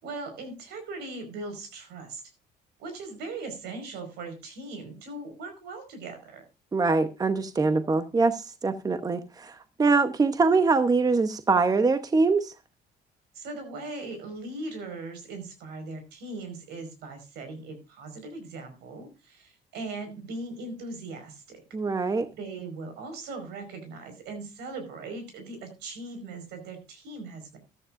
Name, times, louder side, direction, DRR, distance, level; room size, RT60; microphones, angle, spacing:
voice 1, 0.0-2.2 2.8-6.4 13.3-21.6 22.3-27.6, right 3 dB, 80° right, 4.9 m, -39 dB
voice 2, 6.7-12.5 21.7-22.3, right 4 dB, 20° right, 0.8 m, -23 dB
14.0 x 13.0 x 2.5 m
cardioid pair, 110°, 17 cm